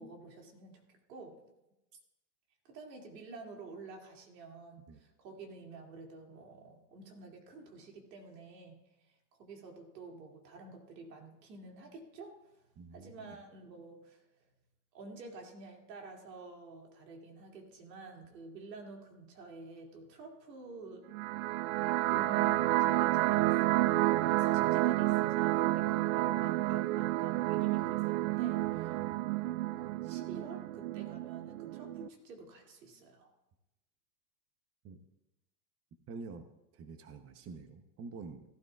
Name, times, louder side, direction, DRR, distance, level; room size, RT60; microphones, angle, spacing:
voice 1, 0.0-1.4 2.6-12.6 12.9-14.2 14.9-21.1 22.1-29.0 29.4-33.3, right 3 dB, 85° right, 1 dB, 2.7 m, -50 dB
voice 2, 12.8-13.4 28.6-29.2 34.8-35.0 36.1-36.4 36.7-38.4, right 4 dB, 30° right, 8 dB, 0.9 m, -47 dB
sound 1, 21.1-32.1, right 17 dB, 60° right, 0.5 m, -30 dB
17.0 x 12.5 x 2.4 m, 0.94 s
hypercardioid pair, 105°, 49 cm